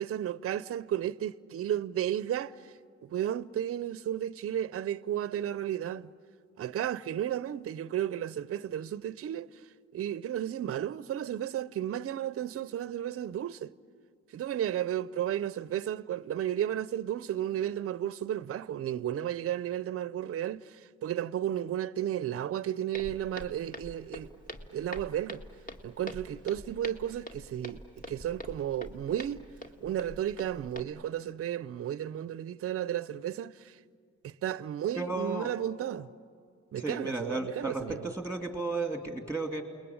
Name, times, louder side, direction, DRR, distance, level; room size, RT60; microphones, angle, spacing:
voice 1, 0.0-2.5 3.0-6.1 6.6-9.5 9.9-13.7 14.3-20.6 21.0-24.3 24.7-25.4 25.8-27.8 28.1-29.4 29.8-33.7 34.2-36.1 36.7-38.1, right 11 dB, 50° right, 0.6 m, -33 dB
Walk footsteps, 22.9-30.8, equal, 25° left, 1.9 m, -45 dB
voice 2, 35.0-35.5 36.7-39.6, right 3 dB, 5° left, 2.7 m, -33 dB
29.0 x 21.0 x 8.9 m
cardioid pair, 90°, 30 cm